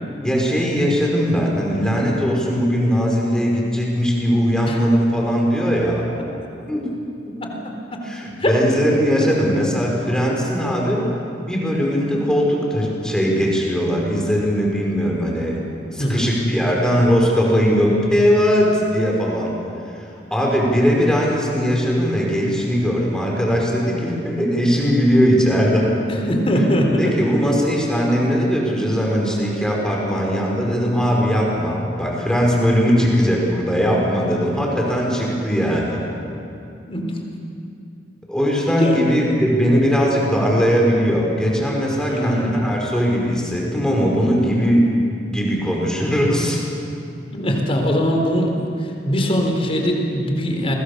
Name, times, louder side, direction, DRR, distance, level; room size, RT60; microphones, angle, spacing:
voice 1, 0.2-6.0 6.7-6.9 8.0-11.1 11.4-15.6 15.9-19.5 20.3-25.9 27.0-36.1 38.3-45.0 45.2-46.6, equal, 5° left, -2 dB, 5.3 m, -19 dB
voice 2, 16.0-16.3 26.1-27.1 36.9-37.2 38.8-39.0 42.1-42.6 47.3-50.7, equal, 35° left, 1 dB, 3.9 m, -21 dB
29.0 x 22.0 x 6.9 m, 2.6 s
head